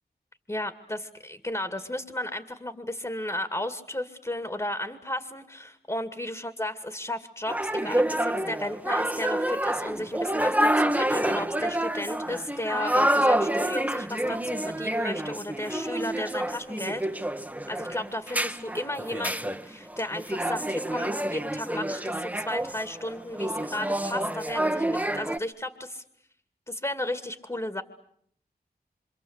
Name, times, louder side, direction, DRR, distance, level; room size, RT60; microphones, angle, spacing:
voice 1, 0.5-17.3 17.7-26.0 26.7-27.8, left 1 dB, 20° left, 9 dB, 2.4 m, -34 dB
sound 1, 7.5-25.4, right 1 dB, 10° right, 1.5 m, -28 dB
26.5 x 26.5 x 8.2 m, 0.68 s
cardioid pair, 45°, 16 cm